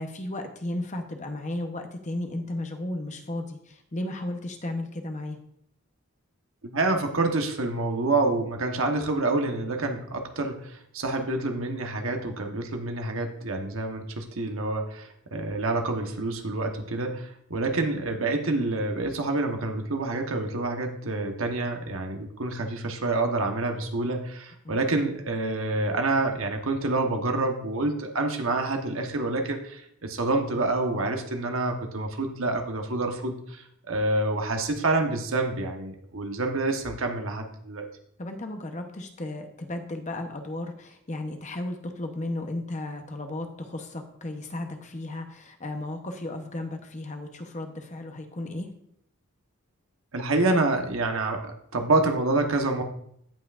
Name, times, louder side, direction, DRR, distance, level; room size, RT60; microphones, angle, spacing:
voice 1, 0.0-5.4 24.6-24.8 38.2-48.7, left 1 dB, 35° left, 5 dB, 0.9 m, -34 dB
voice 2, 6.6-37.9 50.1-52.8, right 2 dB, 70° right, 4 dB, 1.1 m, -27 dB
16.0 x 5.7 x 2.5 m, 0.70 s
head